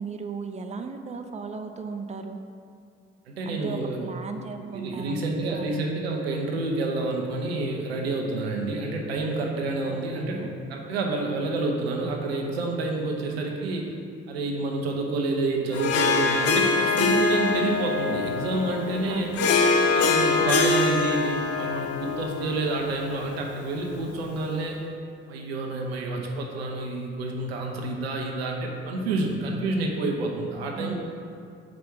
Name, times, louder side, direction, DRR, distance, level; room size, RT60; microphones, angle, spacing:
voice 1, 0.0-2.4 3.4-5.8 9.8-10.5 19.0-19.6 30.6-30.9, right 4 dB, 20° right, 5 dB, 0.6 m, -36 dB
voice 2, 3.3-4.0 4.5-13.9 14.3-19.3 19.8-24.8 25.3-30.9, right 2 dB, 90° right, 1 dB, 0.7 m, -29 dB
Harp, 15.7-24.4, left 4 dB, 55° left, 0.7 m, -24 dB
5.1 x 4.8 x 6.1 m, 2.4 s
hypercardioid pair, 45°, 30 cm